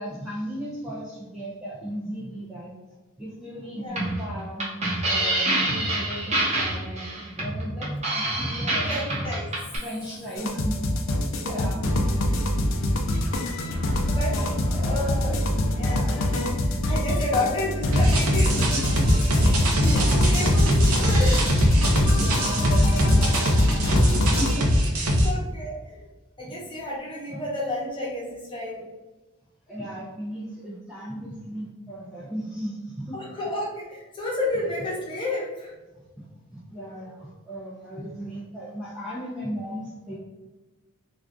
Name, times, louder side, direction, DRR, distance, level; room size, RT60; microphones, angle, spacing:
voice 1, 0.0-2.7 3.2-9.0 9.8-11.9 14.0-14.8 16.1-16.2 18.9-19.0 19.4-20.5 21.7-24.7 25.0-25.2 27.3-27.4 29.7-33.1 35.9-36.3 36.5-40.2, equal, 5° right, -8 dB, 0.4 m, -36 dB
voice 2, 3.8-4.1 8.9-9.5 11.4-11.7 14.0-14.3 14.7-15.4 15.7-16.2 16.9-18.7 19.8-20.7 21.0-21.5 25.2-26.0 26.4-28.8 33.1-35.7, left 2 dB, 25° left, -5 dB, 0.8 m, -31 dB
sound 1, 3.9-9.8, right 1 dB, 30° right, 0.7 m, -26 dB
sound 2, 10.4-24.6, left 1 dB, 60° left, 0.4 m, -25 dB
sound 3, 17.9-25.3, equal, 75° right, 0.6 m, -21 dB
2.4 x 2.4 x 3.4 m, 1.2 s
head